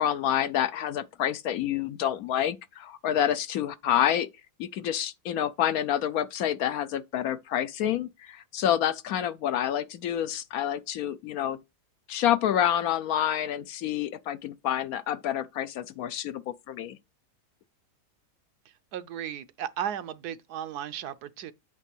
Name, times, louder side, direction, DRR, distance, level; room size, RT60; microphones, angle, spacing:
voice 1, 0.0-4.3 4.6-11.6 12.1-17.0, left 10 dB, 70° left, 1.0 m, -28 dB
voice 2, 18.9-21.5, right 9 dB, 75° right, 1.2 m, -35 dB
8.2 x 3.6 x 6.0 m
omnidirectional pair, 1.7 m